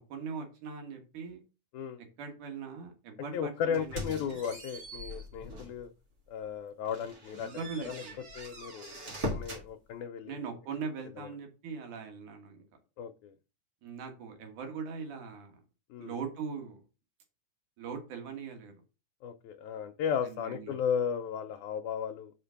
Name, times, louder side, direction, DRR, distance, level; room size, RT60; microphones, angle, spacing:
voice 1, 0.0-1.4 2.2-4.4 7.4-8.2 10.2-12.7 13.8-15.6 16.0-16.8 17.8-18.7 20.2-20.8, right 5 dB, 80° right, 3.2 m, -41 dB
voice 2, 3.3-5.9 6.3-8.0 8.4-9.0 9.2-10.5 11.2-11.3 13.0-13.3 15.9-16.1 19.2-22.3, left 7 dB, 80° left, 2.1 m, -35 dB
sound 1, 3.7-5.8 6.3-6.4 6.9-9.7, equal, 35° right, 1.7 m, -41 dB
5.8 x 5.1 x 5.7 m
omnidirectional pair, 3.5 m